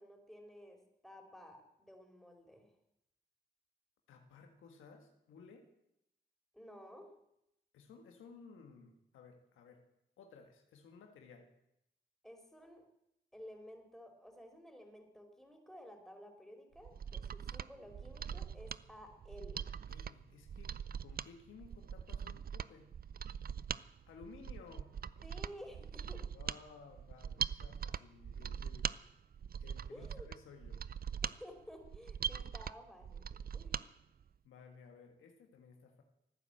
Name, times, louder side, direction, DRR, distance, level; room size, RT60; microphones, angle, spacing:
voice 1, 0.0-2.7 6.5-7.1 12.2-12.8 13.3-19.7 25.2-26.2 29.9-30.3 31.2-33.9, equal, ahead, 2 dB, 4.6 m, -54 dB
voice 2, 4.1-5.7 7.7-9.8 10.2-11.5 19.6-20.7 21.0-22.9 24.1-24.9 26.3-28.9 29.6-31.1 34.4-36.0, left 5 dB, 90° left, 4 dB, 1.7 m, -57 dB
Mechanisms, 16.8-33.9 34.2-34.3, right 7 dB, 50° right, 0.5 m, -42 dB
15.0 x 9.7 x 7.7 m, 0.81 s
supercardioid pair, 50°, 20 cm